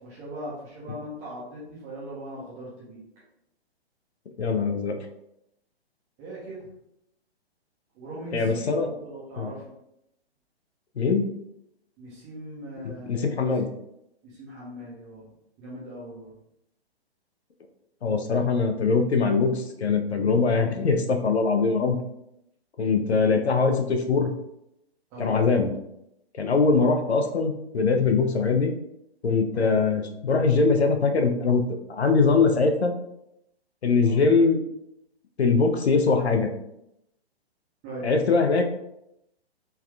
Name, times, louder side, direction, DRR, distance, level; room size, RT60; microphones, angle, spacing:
voice 1, 0.0-3.0 6.2-6.7 7.9-9.7 12.0-13.5 14.2-15.3 15.6-16.3 25.1-25.5 29.5-29.8 34.0-34.3 37.8-38.2, equal, 10° right, -7 dB, 0.4 m, -39 dB
voice 2, 4.4-5.0 8.3-8.9 9.4-9.5 11.0-11.2 12.8-13.7 18.0-22.0 22.8-24.3 25.2-25.7 26.4-28.7 29.2-31.6 31.9-32.9 33.8-34.6 35.4-36.5 38.0-38.6, left 4 dB, 80° left, 4 dB, 0.6 m, -22 dB
3.4 x 2.2 x 2.3 m, 0.81 s
figure-of-eight pair, 125°, 32 cm